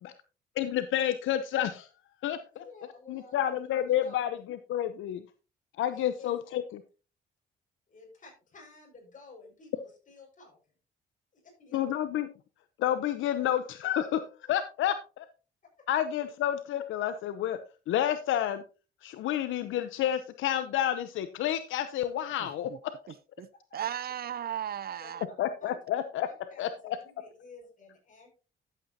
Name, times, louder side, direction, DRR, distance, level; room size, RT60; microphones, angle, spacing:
voice 1, 0.6-1.9 2.2-2.6 3.1-5.2 5.8-6.8 11.7-12.3 12.8-15.3 15.9-17.6 17.9-18.6 19.0-22.7 25.4-26.3 26.6-27.0, left 11 dB, 80° left, 0.7 m, -30 dB
voice 2, 2.3-3.5 3.9-4.2 5.9-6.3 7.9-10.6 11.3-11.8 15.8-15.9 25.0-25.1 25.6-25.8 26.5-28.3, left 4 dB, 40° left, 6.0 m, -52 dB
voice 3, 23.1-25.2, right 10 dB, 50° right, 0.5 m, -36 dB
13.0 x 8.2 x 2.8 m
cardioid pair, 90°, 20 cm